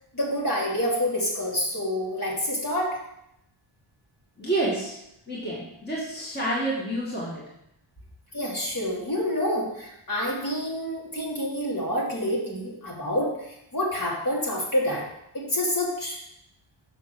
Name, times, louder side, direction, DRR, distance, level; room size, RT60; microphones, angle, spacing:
voice 1, 0.1-3.0 8.3-15.0 15.3-16.2, left 1 dB, 40° left, -4 dB, 2.9 m, -27 dB
voice 2, 4.4-5.0 5.3-7.5, right 1 dB, 20° left, -6 dB, 2.0 m, -29 dB
7.1 x 5.9 x 6.8 m, 0.80 s
wide cardioid pair, 150°, 48 cm